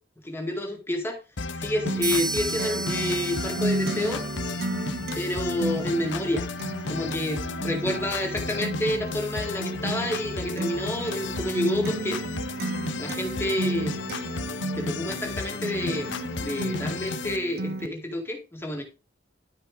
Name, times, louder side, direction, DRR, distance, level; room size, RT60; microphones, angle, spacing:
voice 1, 0.2-1.2 1.6-4.2 5.2-6.5 6.9-12.2 13.0-14.0 14.8-16.1 16.4-18.8, left 1 dB, 15° left, 1 dB, 2.1 m, -29 dB
sound 1, 1.4-17.4, left 3 dB, 75° left, 0.8 m, -34 dB
Acoustic guitar, 1.9-17.9, right 2 dB, 55° right, 0.6 m, -34 dB
sound 2, 2.0-5.8, right 3 dB, 25° right, 1.8 m, -34 dB
13.0 x 5.1 x 3.9 m, 0.30 s
head